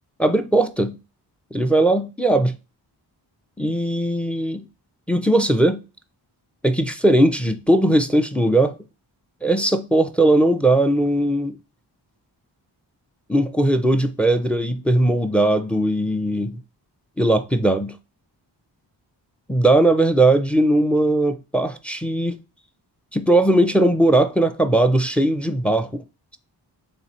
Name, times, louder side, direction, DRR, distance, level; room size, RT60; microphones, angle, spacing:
voice 1, 0.2-1.0 1.5-2.5 3.6-4.6 5.1-5.8 6.6-8.8 9.4-11.5 13.3-16.6 17.2-18.0 19.5-22.4 23.1-26.0, right 1 dB, 5° left, 0.4 m, -19 dB
3.6 x 3.1 x 4.0 m
wide cardioid pair, 95°, 43 cm